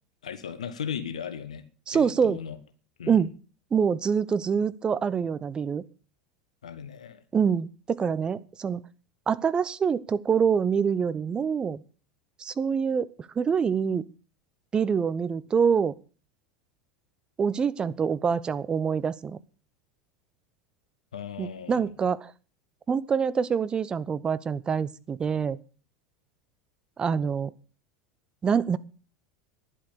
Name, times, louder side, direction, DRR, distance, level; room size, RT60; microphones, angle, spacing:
voice 1, 0.2-1.6 1.9-2.6 3.0-3.2 6.6-7.2 21.1-21.9, left 7 dB, 75° left, 11 dB, 1.2 m, -37 dB
voice 2, 1.9-2.4 3.1-3.3 3.7-5.8 7.3-8.8 9.3-11.8 12.4-14.0 14.7-15.9 17.4-19.4 21.4-22.3 22.9-25.6 27.0-27.5 28.4-28.8, right 6 dB, 25° right, 16 dB, 0.9 m, -25 dB
11.5 x 10.5 x 6.9 m, 0.38 s
figure-of-eight pair, 80°, 4 cm